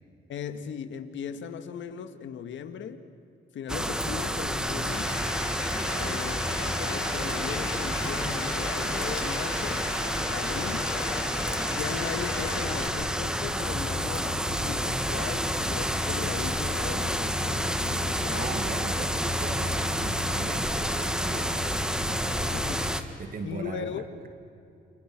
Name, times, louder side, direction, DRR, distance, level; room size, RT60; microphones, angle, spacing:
voice 1, 0.3-3.0 3.5-5.1 6.0-6.4 6.7-9.8 10.3-10.9 11.7-18.5 22.5-22.8 23.4-24.0, left 7 dB, 70° left, 9 dB, 2.0 m, -38 dB
sound 1, 3.7-23.0, equal, 5° right, 1.8 m, -29 dB
Bathtub (filling or washing), 4.9-12.9, left 5 dB, 90° left, 7.1 m, -37 dB
voice 2, 5.9-6.2 18.3-22.5 22.9-24.0, right 4 dB, 45° right, 6 dB, 2.2 m, -39 dB
29.0 x 28.5 x 6.2 m, 2.5 s
cardioid pair, 90°, 20 cm